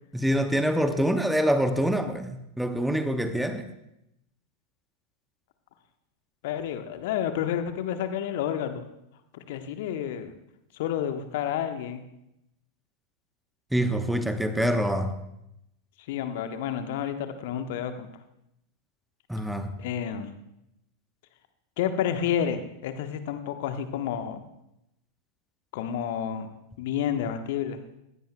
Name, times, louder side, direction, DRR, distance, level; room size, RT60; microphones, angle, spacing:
voice 1, 0.1-3.7 13.7-15.2 19.3-19.7, equal, ahead, 8 dB, 1.0 m, -25 dB
voice 2, 6.4-8.8 9.3-10.3 10.7-12.0 16.1-18.1 19.8-20.3 21.8-24.4 25.7-26.5 26.8-27.8, left 9 dB, 50° left, 8 dB, 1.1 m, -30 dB
20.5 x 16.0 x 2.3 m, 0.84 s
figure-of-eight pair, 90°, 0 cm